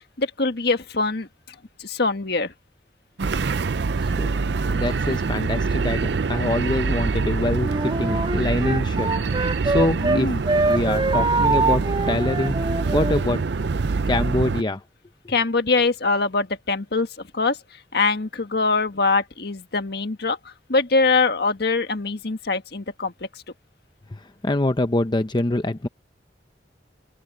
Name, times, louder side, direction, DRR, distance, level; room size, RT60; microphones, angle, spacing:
voice 1, 0.2-1.3 1.8-2.5 9.9-10.4 15.3-17.1 17.3-17.6 17.9-20.4 20.7-23.1, left 3 dB, 65° left, 1.6 m, -23 dB
sound 1, 3.2-14.6, right 4 dB, 70° right, 0.5 m, -25 dB
voice 2, 4.0-4.4 4.7-10.3 10.7-12.6 12.9-13.4 14.1-14.8 24.1-25.9, left 2 dB, 25° left, 0.7 m, -25 dB
Wind instrument woodwind instrument, 7.6-10.2 10.4-13.2, right 3 dB, 30° right, 2.2 m, -24 dB
open air
head